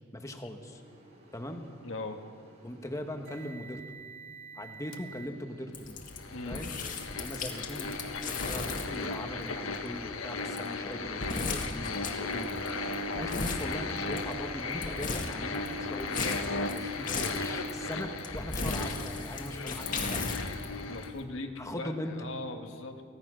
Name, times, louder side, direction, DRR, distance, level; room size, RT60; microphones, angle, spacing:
voice 1, 0.1-0.8 1.3-1.6 2.6-3.8 4.6-6.0 6.5-6.7 7.2-12.6 13.0-20.3 21.6-22.3, left 1 dB, 15° left, 5 dB, 1.4 m, -40 dB
sound 1, 0.5-5.3, right 5 dB, 35° right, 7.2 m, -51 dB
voice 2, 1.8-2.2 6.3-6.6 20.8-23.0, left 2 dB, 65° left, 3 dB, 1.6 m, -39 dB
sound 2, 4.9-5.0 6.1-21.1, left 3 dB, 85° left, 1.5 m, -36 dB
sound 3, 5.7-21.2, left 3 dB, 40° left, 2.1 m, -38 dB
24.0 x 17.5 x 6.4 m, 2.1 s
head